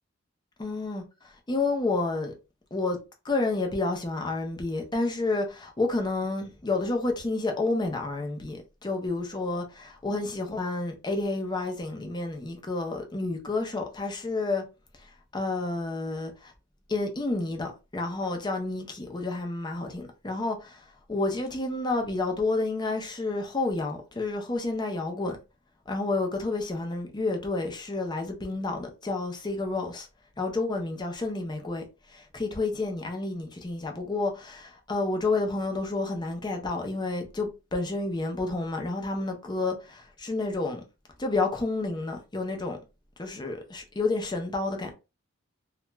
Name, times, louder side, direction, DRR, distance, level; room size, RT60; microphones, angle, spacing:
voice 1, 0.6-2.3 2.7-3.0 3.2-14.6 15.3-16.5 16.9-25.4 25.9-30.1 30.4-31.8 32.1-40.8 41.2-42.8 43.2-44.9, left 3 dB, 20° left, 0.6 m, -30 dB
2.4 x 2.2 x 3.0 m
head